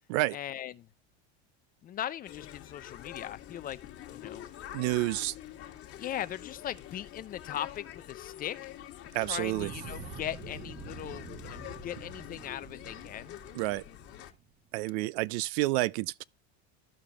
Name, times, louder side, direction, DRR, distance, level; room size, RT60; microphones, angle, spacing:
voice 1, 0.3-0.9 1.8-3.8 4.1-4.4 6.0-8.7 9.2-13.4, left 11 dB, 25° left, 0.4 m, -39 dB
sound 1, 2.3-14.3, left 12 dB, 40° left, 1.7 m, -46 dB
voice 2, 4.7-5.4 9.1-9.7 13.6-13.8 14.7-16.2, right 19 dB, 65° right, 0.5 m, -29 dB
Fire, 9.3-14.5, right 5 dB, 25° right, 0.9 m, -47 dB
14.5 x 4.9 x 2.4 m
supercardioid pair, 135°, 34 cm